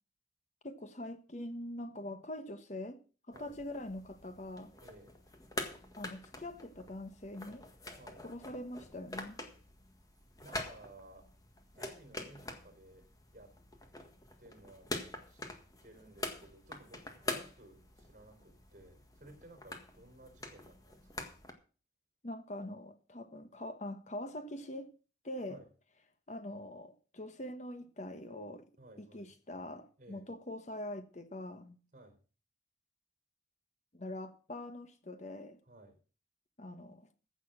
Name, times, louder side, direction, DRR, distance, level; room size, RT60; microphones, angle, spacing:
voice 1, 0.6-3.0 3.3-4.7 6.0-7.6 8.2-9.4 22.2-24.9 25.2-25.6 26.3-28.7 29.0-31.8 33.9-35.6 36.6-37.1, left 1 dB, 40° left, 1.2 m, -43 dB
sound 1, 3.3-21.5, left 2 dB, 20° left, 1.7 m, -46 dB
voice 2, 4.8-5.1 8.0-8.3 10.4-11.3 11.7-13.1 13.3-13.5 14.4-14.9 15.3-15.4 15.8-21.3 25.5-25.7 28.8-29.3 30.0-30.3 31.9-32.2 35.7-36.0, right 1 dB, 45° right, 4.3 m, -56 dB
15.0 x 6.8 x 6.2 m
head